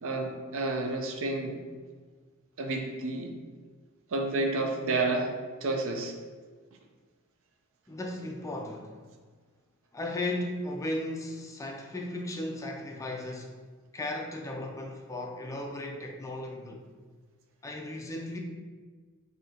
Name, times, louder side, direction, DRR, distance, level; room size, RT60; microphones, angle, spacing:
voice 1, 0.0-1.6 2.6-3.3 4.1-5.3 5.6-6.1, right 2 dB, 65° right, 0.6 m, -30 dB
voice 2, 7.9-9.0 9.9-13.6 13.9-16.8 17.6-18.4, left 1 dB, 15° left, 0.3 m, -36 dB
5.4 x 2.8 x 2.8 m
head